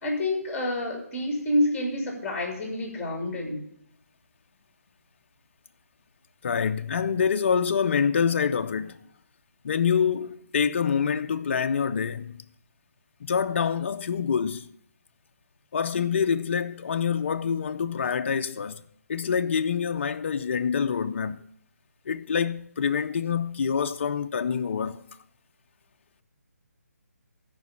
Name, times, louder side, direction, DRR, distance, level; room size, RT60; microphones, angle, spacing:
voice 1, 0.0-3.6, left 1 dB, 15° left, 3.2 m, -28 dB
voice 2, 6.4-9.0 9.6-12.4 13.2-14.7 15.7-18.8 19.1-21.4 22.1-25.0, left 6 dB, 50° left, 0.6 m, -26 dB
13.5 x 5.2 x 7.1 m
figure-of-eight pair, 155°, 9 cm